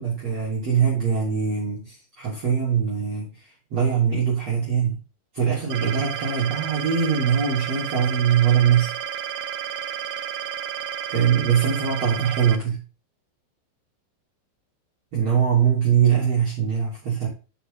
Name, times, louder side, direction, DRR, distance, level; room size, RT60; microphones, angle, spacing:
voice 1, 0.0-3.3 3.7-5.0 5.3-8.9 11.1-12.8 15.1-17.3, right 8 dB, 35° right, -6 dB, 3.9 m, -22 dB
sound 1, 5.7-12.6, right 9 dB, 80° right, 2.1 m, -31 dB
7.5 x 7.0 x 5.7 m, 0.33 s
omnidirectional pair, 5.6 m